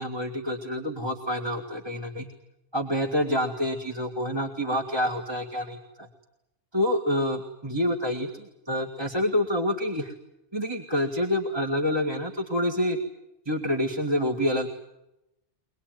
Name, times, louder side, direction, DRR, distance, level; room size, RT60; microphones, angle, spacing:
voice 1, 0.0-2.3 2.7-6.1 6.7-10.1 10.5-13.0 13.5-14.7, left 1 dB, 20° right, 1 dB, 2.0 m, -27 dB
24.0 x 19.5 x 9.3 m, 0.87 s
omnidirectional pair, 1.2 m